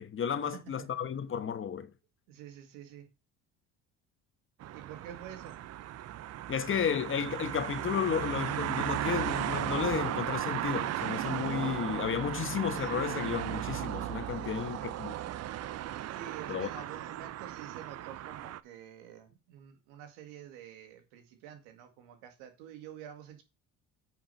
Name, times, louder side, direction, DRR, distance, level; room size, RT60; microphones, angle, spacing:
voice 1, 0.0-1.9 6.5-15.1 16.5-16.7, left 7 dB, 40° left, 1.3 m, -33 dB
voice 2, 0.5-0.9 2.3-3.1 4.7-5.6 14.3-14.9 15.9-23.4, right 10 dB, 90° right, 1.9 m, -48 dB
sound 1, 4.6-18.6, right 12 dB, 50° right, 0.7 m, -36 dB
9.3 x 4.9 x 5.6 m
supercardioid pair, 90°, 33 cm